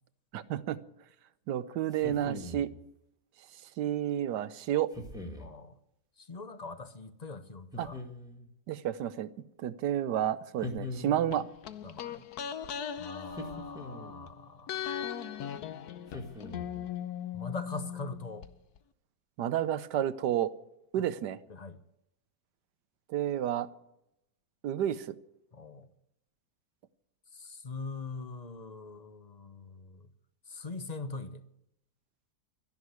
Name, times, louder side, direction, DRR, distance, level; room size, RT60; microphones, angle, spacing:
voice 1, 0.3-0.8 1.5-2.7 3.8-4.9 7.8-7.9 8.7-9.3 9.6-11.4 19.4-20.5 20.9-21.4 23.1-23.7 24.6-25.2, right 11 dB, 90° right, 15 dB, 1.4 m, -30 dB
sound 1, 1.9-2.8 4.9-5.5 7.7-8.5 10.6-11.5 13.3-14.3 16.1-16.9, left 2 dB, ahead, 2.0 m, -42 dB
voice 2, 5.4-5.8 6.2-8.0 11.8-12.3 13.0-15.5 17.3-18.5 21.0-21.1 21.5-21.8 25.5-25.9 27.3-30.1 30.5-31.4, left 3 dB, 30° left, 11 dB, 0.8 m, -42 dB
sound 2, 11.3-14.3 14.7-18.5 18.8-18.9, left 9 dB, 70° left, 1.3 m, -39 dB
13.0 x 11.0 x 9.5 m, 0.81 s
omnidirectional pair, 1.8 m